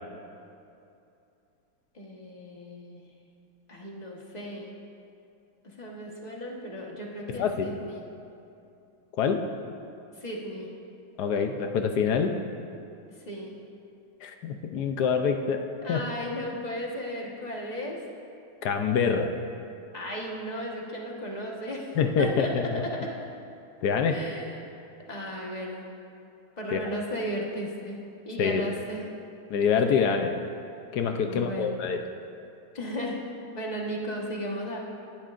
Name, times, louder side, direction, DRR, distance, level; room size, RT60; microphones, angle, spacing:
voice 1, 1.9-3.0 3.7-4.7 5.6-8.0 10.2-10.7 13.2-13.5 15.8-18.0 19.9-23.2 24.1-24.5 25.1-25.8 26.6-28.0 28.2-29.0 31.2-31.8 32.8-33.2 33.5-34.8, equal, 25° left, -2 dB, 1.2 m, -35 dB
voice 2, 7.3-7.7 9.2-9.4 11.2-12.4 14.2-15.6 15.9-16.0 18.6-19.3 22.0-22.8 23.8-24.2 26.7-26.8 28.4-28.6 29.5-30.3 30.9-32.0, left 6 dB, 65° left, 5 dB, 1.0 m, -25 dB
17.5 x 12.0 x 2.5 m, 2.6 s
omnidirectional pair, 2.3 m